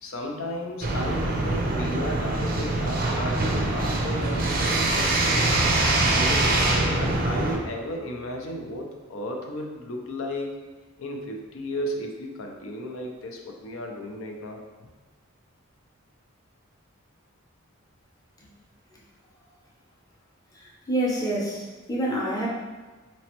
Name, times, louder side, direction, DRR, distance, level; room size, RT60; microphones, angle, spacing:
voice 1, 0.0-5.3 6.1-6.6 7.0-10.6 11.0-14.6, left 1 dB, 75° left, 2 dB, 0.6 m, -34 dB
sound 1, 0.8-7.6, right 2 dB, 40° right, 0.5 m, -24 dB
voice 2, 20.9-22.5, right 1 dB, 15° left, -4 dB, 0.6 m, -27 dB
4.2 x 3.0 x 2.9 m, 1.3 s
head